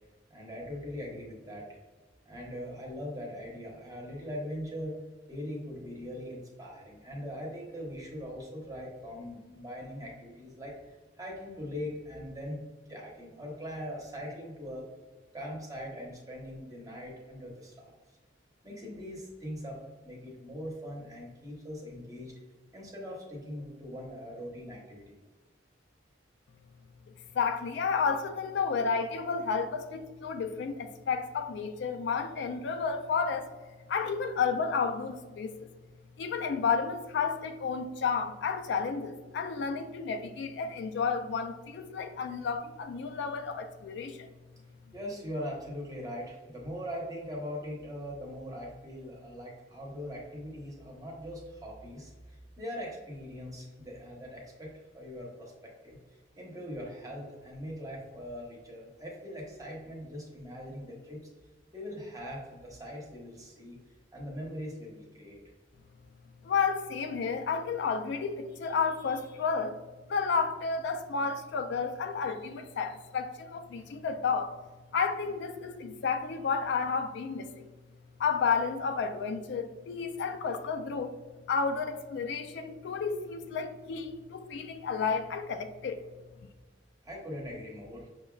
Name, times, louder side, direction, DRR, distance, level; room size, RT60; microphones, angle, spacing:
voice 1, 0.3-1.8 2.2-5.0 5.3-12.6 12.9-14.9 15.3-17.9 18.6-22.3 22.7-25.1 44.9-61.3 61.7-63.8 64.1-65.4 87.0-88.1, equal, 20° right, 0.9 m, -41 dB
voice 2, 27.3-33.5 33.9-35.7 36.2-44.3 66.4-69.8 70.1-74.5 74.9-77.7 78.2-81.1 81.5-86.0, left 5 dB, 70° left, 0.3 m, -31 dB
6.3 x 2.3 x 2.3 m
head